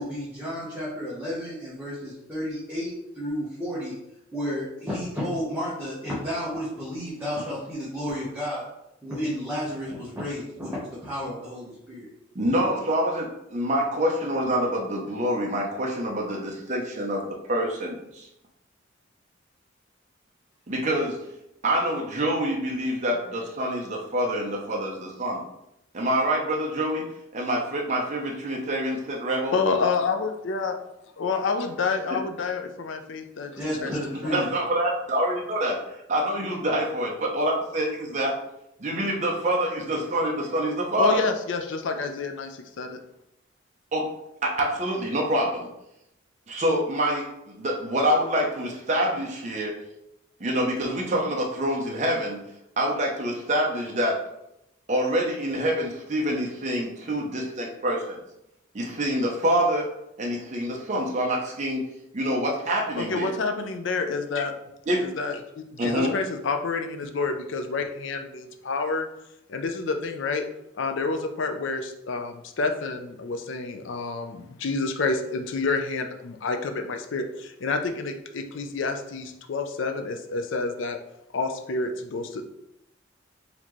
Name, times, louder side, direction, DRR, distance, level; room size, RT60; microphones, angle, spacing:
voice 1, 0.0-3.9 4.3-8.6 9.0-12.1 33.6-34.5, equal, 10° right, -9 dB, 0.9 m, -32 dB
voice 2, 12.3-17.2 17.5-18.3 20.7-21.2 21.6-25.4 25.9-27.1 27.3-29.6 32.1-32.2 34.3-35.8 36.1-38.3 38.8-41.2 43.9-44.1 44.4-45.7 46.5-49.7 50.4-52.4 52.8-54.2 54.9-58.2 58.7-59.9 60.2-61.9 62.1-63.4 64.9-65.0 65.8-66.2, equal, 35° right, -1 dB, 0.6 m, -26 dB
voice 3, 29.5-30.8 31.2-33.9 34.2-34.3 41.0-43.0 63.0-64.5 65.0-69.1 69.5-70.5 70.8-81.0 81.3-82.4, left 4 dB, 65° left, 6 dB, 0.4 m, -28 dB
4.1 x 2.8 x 3.0 m, 0.84 s
head